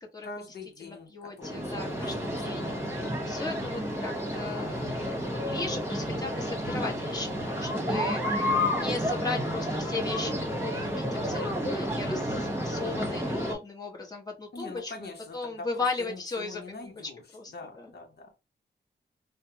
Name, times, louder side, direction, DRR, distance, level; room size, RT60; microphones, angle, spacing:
voice 1, 0.2-3.3 14.5-17.2 17.5-18.3, left 3 dB, 60° left, 0.8 m, -44 dB
voice 2, 0.8-14.9 15.3-16.9 17.3-17.9, left 3 dB, 20° left, 1.1 m, -37 dB
sound 1, 1.4-13.5, equal, 15° right, 1.2 m, -31 dB
3.2 x 2.0 x 2.8 m
cardioid pair, 65°, 19 cm